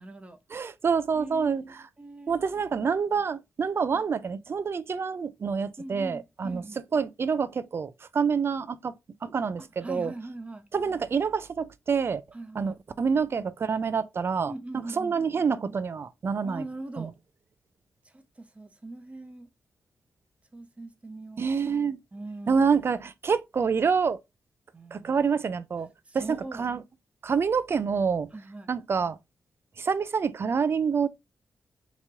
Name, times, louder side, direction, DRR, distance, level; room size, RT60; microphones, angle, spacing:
voice 1, 0.0-0.4 1.1-1.6 2.0-2.4 3.9-4.3 5.8-6.8 9.6-10.7 12.3-12.8 14.5-15.2 16.4-17.1 18.0-19.5 20.5-21.4 22.1-22.7 24.7-25.3 26.1-26.7 28.3-28.7, right 2 dB, 25° right, 0.7 m, -41 dB
voice 2, 0.5-1.8 2.3-6.6 6.9-8.9 9.2-10.1 10.7-12.2 12.6-16.7 17.0-17.1 21.4-22.0 22.5-24.2 24.9-25.9 26.1-26.8 27.2-28.3 28.7-29.2 29.8-31.1, right 6 dB, 50° right, 0.4 m, -27 dB
3.0 x 2.8 x 3.4 m
cardioid pair, 70°, 5 cm